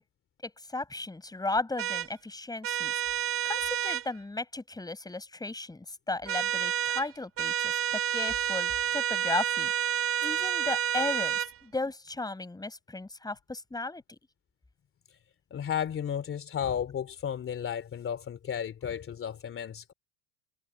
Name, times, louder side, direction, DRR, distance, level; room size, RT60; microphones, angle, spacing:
voice 1, 0.4-2.9 3.4-9.7 10.2-14.2, left 2 dB, 10° left, 5.6 m, -35 dB
sound 1, 1.8-2.1 2.6-4.1 6.3-7.1 7.4-11.5, right 9 dB, 30° right, 1.2 m, -29 dB
voice 2, 15.5-19.9, left 8 dB, 30° left, 3.2 m, -33 dB
hypercardioid pair, 100°, 44 cm